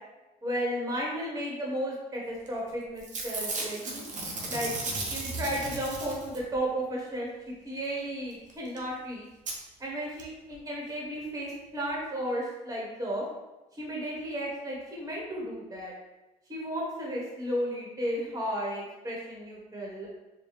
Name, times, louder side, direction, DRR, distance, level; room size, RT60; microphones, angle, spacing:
voice 1, 0.4-4.0 4.5-4.7 5.1-9.3 9.8-13.2 13.7-15.9 16.5-20.1, equal, 20° right, -3 dB, 1.1 m, -34 dB
Packing tape duct tape / Tearing, 2.5-2.7 3.0-6.6 8.5-8.6 8.8-8.9 9.5-9.6 10.2-10.3 10.5-10.6, right 2 dB, 50° right, 0.8 m, -35 dB
4.7 x 2.2 x 3.2 m, 1.0 s
cardioid pair, 110°, 17 cm